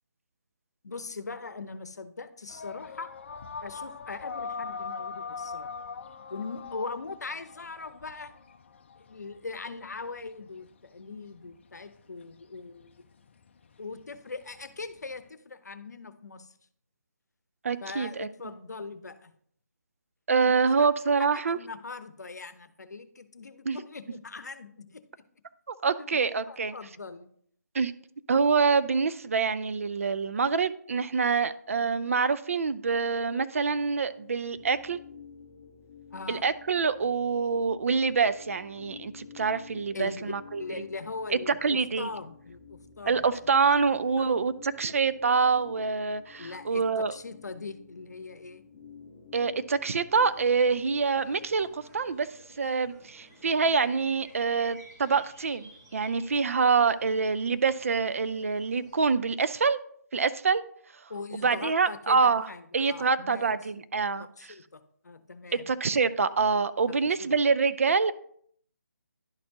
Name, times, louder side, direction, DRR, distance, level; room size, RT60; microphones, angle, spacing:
voice 1, 0.8-3.1 3.6-5.7 6.3-8.3 9.0-13.1 13.8-16.5 17.8-19.3 20.4-20.9 21.2-25.0 26.0-26.2 26.5-27.3 36.1-36.5 39.9-43.4 44.1-44.3 46.3-48.6 61.1-63.6 64.2-65.7 66.9-67.3, left 4 dB, 70° left, 12 dB, 0.8 m, -41 dB
sound 1, 2.5-15.3, left 5 dB, 45° left, 0.5 m, -42 dB
voice 2, 17.6-18.3 20.3-21.6 23.7-23.8 25.7-26.7 27.7-27.9 28.3-35.0 36.3-40.6 41.5-42.1 43.1-47.1 49.3-52.3 52.6-59.8 60.1-60.6 61.3-62.5 62.7-64.5 65.7-68.1, right 5 dB, 50° right, 14 dB, 0.4 m, -26 dB
sound 2, 33.7-52.2, left 6 dB, 15° left, 1.0 m, -51 dB
sound 3, 50.1-59.1, right 1 dB, 15° right, 1.3 m, -56 dB
11.0 x 4.2 x 2.8 m, 0.62 s
figure-of-eight pair, 155°, 9 cm